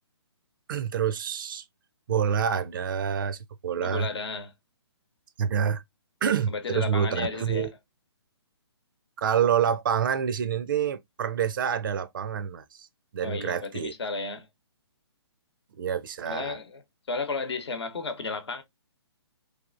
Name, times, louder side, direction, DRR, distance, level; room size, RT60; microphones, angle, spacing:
voice 1, 0.7-1.6 2.1-4.1 5.4-5.8 6.2-7.7 9.2-12.9 13.1-13.9 15.8-16.6, right 8 dB, 50° right, 0.4 m, -27 dB
voice 2, 3.8-4.5 6.5-7.7 13.2-14.5 16.3-16.8 17.1-18.6, left 4 dB, 70° left, 0.9 m, -33 dB
3.4 x 2.4 x 2.4 m
figure-of-eight pair, 135°, 15 cm